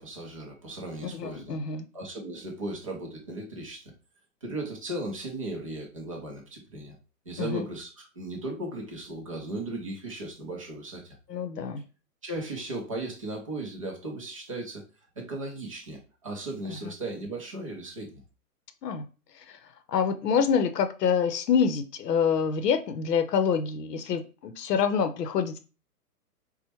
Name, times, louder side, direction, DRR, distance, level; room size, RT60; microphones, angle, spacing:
voice 1, 0.0-1.5 1.9-3.9 4.4-7.0 7.3-11.1 12.2-14.8 15.2-18.2, right 2 dB, 25° right, -1 dB, 0.4 m, -36 dB
voice 2, 1.1-1.9 7.4-7.6 11.3-11.8 16.7-16.9 18.8-19.0 19.9-25.6, left 6 dB, 85° left, 9 dB, 0.7 m, -26 dB
4.2 x 2.1 x 2.8 m, 0.34 s
hypercardioid pair, 150°, 47 cm